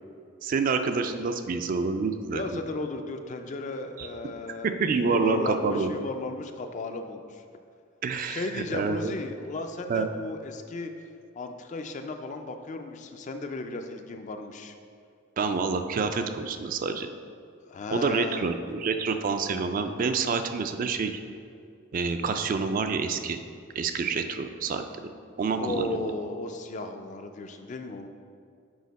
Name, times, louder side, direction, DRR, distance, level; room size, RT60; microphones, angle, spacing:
voice 1, 0.4-2.4 4.0-4.1 4.6-5.9 8.0-9.1 9.9-10.1 15.4-17.1 17.9-21.2 21.9-23.4 23.8-25.1 25.4-26.1, right 4 dB, 40° right, 8 dB, 0.3 m, -27 dB
voice 2, 2.3-4.7 5.0-7.4 8.3-10.9 11.4-14.8 17.7-18.5 25.6-28.1, left 2 dB, 35° left, 6 dB, 0.4 m, -35 dB
6.3 x 4.9 x 4.0 m, 2.3 s
head